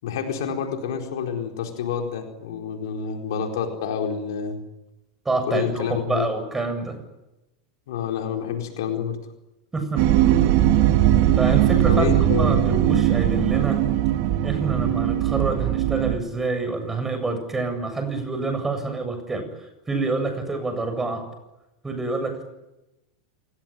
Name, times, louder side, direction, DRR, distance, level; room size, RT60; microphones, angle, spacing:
voice 1, 0.0-4.6 5.5-6.3 7.9-9.2 11.9-12.7, left 7 dB, 65° left, 4 dB, 4.4 m, -28 dB
voice 2, 5.2-7.0 9.7-10.1 11.4-13.8 14.4-21.3 21.8-22.4, right 3 dB, 15° right, 8 dB, 7.8 m, -27 dB
sound 1, 10.0-16.2, right 12 dB, 55° right, 2.4 m, -20 dB
28.5 x 19.0 x 9.3 m, 0.94 s
figure-of-eight pair, 90°, 2 cm